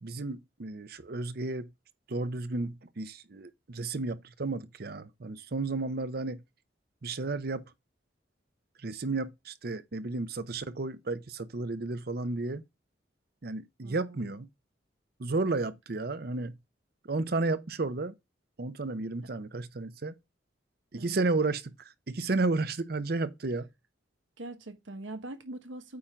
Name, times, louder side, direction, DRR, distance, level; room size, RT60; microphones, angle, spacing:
voice 1, 0.0-1.7 2.1-6.4 7.0-7.6 8.8-12.6 13.4-14.5 15.2-16.6 17.1-18.1 18.6-20.1 20.9-23.7, right 3 dB, 55° right, 0.7 m, -32 dB
voice 2, 13.8-14.4 21.0-21.2 24.4-26.0, right 2 dB, 90° right, 1.3 m, -43 dB
8.7 x 3.8 x 4.4 m
head